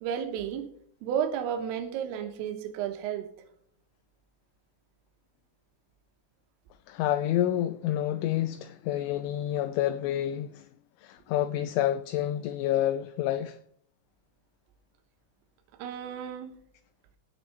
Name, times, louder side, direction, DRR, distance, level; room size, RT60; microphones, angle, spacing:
voice 1, 0.0-0.7 1.0-3.3 15.8-16.6, right 8 dB, 85° right, 3.8 m, -32 dB
voice 2, 6.9-10.7 11.0-13.6, left 12 dB, 80° left, 2.9 m, -28 dB
16.5 x 6.4 x 4.3 m
omnidirectional pair, 5.8 m